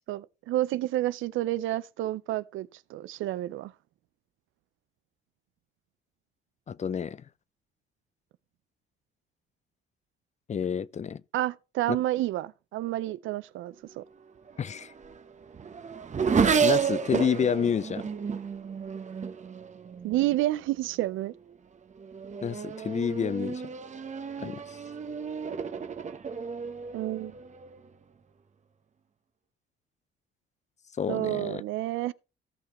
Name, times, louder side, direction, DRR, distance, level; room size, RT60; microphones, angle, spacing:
voice 1, 0.1-3.7 11.3-14.0 20.0-21.3 26.9-27.3 31.1-32.1, right 15 dB, 85° right, 0.5 m, -30 dB
voice 2, 6.7-7.2 10.5-11.2 11.9-12.0 14.6-14.9 16.6-18.1 22.4-23.6 24.4-24.6 31.0-31.6, left 7 dB, 35° left, 0.5 m, -29 dB
Race car auto racing / Accelerating revving vroom, 14.5-20.4 21.2-21.5 22.0-27.9, right 6 dB, 35° right, 1.0 m, -31 dB
17.0 x 5.8 x 3.0 m
cardioid pair, 90°, 20 cm